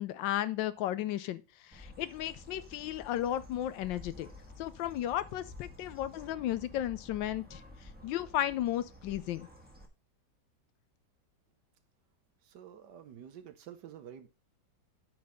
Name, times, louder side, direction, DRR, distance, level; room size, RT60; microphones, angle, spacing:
voice 1, 0.0-4.3 4.6-7.6 8.0-9.5, left 12 dB, 80° left, 1.2 m, -34 dB
Bird, 1.7-9.9, left 1 dB, 5° right, 1.2 m, -51 dB
voice 2, 12.4-14.3, right 9 dB, 65° right, 1.3 m, -49 dB
8.5 x 4.0 x 5.5 m
omnidirectional pair, 2.1 m